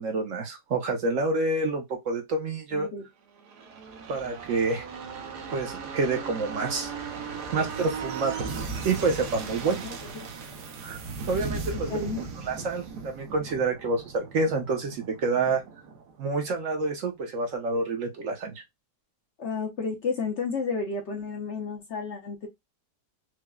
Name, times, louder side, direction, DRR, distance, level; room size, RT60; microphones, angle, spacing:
voice 1, 0.0-2.9 4.1-4.9 5.5-6.9 7.5-8.5 8.8-9.8 10.8-11.0 11.3-12.0 12.4-15.6 16.2-18.6, right 3 dB, 60° right, 1.0 m, -28 dB
voice 2, 2.7-3.1 9.8-10.3 11.9-12.2 19.4-22.5, left 4 dB, 60° left, 0.8 m, -32 dB
sound 1, 3.4-16.9 17.2-17.3, right 5 dB, 75° right, 1.3 m, -37 dB
4.6 x 2.1 x 2.2 m
omnidirectional pair, 1.7 m